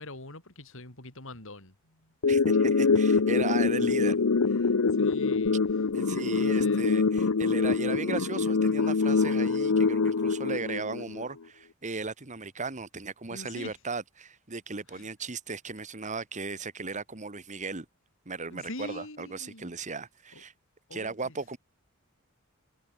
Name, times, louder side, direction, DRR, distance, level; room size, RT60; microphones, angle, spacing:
voice 1, 0.0-1.7 5.0-5.6 6.1-6.9 13.3-13.7 14.9-15.0 18.5-19.7 20.3-20.4 20.9-21.6, left 2 dB, 65° left, 5.0 m, -44 dB
sound 1, 2.2-11.3, left 4 dB, 90° left, 0.7 m, -25 dB
voice 2, 2.3-4.2 4.5-4.6 5.9-17.9 18.3-20.5 20.9-21.6, right 4 dB, 35° right, 1.7 m, -36 dB
head